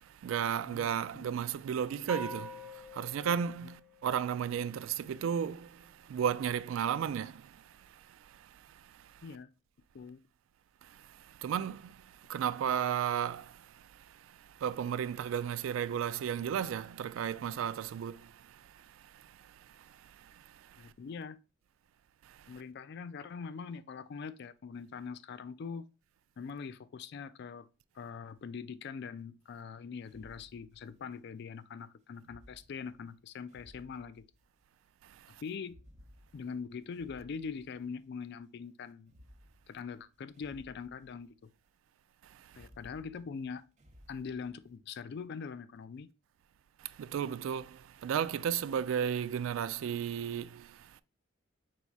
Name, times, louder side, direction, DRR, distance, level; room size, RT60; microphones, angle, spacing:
voice 1, 0.0-9.2 10.8-20.9 22.2-22.6 35.0-35.4 42.2-42.7 46.8-51.0, right 8 dB, 80° right, 0.3 m, -35 dB
voice 2, 0.6-1.3 9.2-9.5 9.9-10.2 20.8-21.4 22.5-25.9 26.4-27.7 28.0-34.2 35.4-35.7 36.3-39.1 39.7-41.3 42.6-43.6 44.1-46.1, left 5 dB, 55° left, 0.3 m, -43 dB
sound 1, 2.1-4.6, equal, 5° right, 0.5 m, -45 dB
sound 2, 30.0-31.3 32.2-34.6 35.6-38.2 39.0-41.5 42.4-44.7, equal, 35° right, 0.7 m, -60 dB
4.7 x 4.1 x 2.3 m
head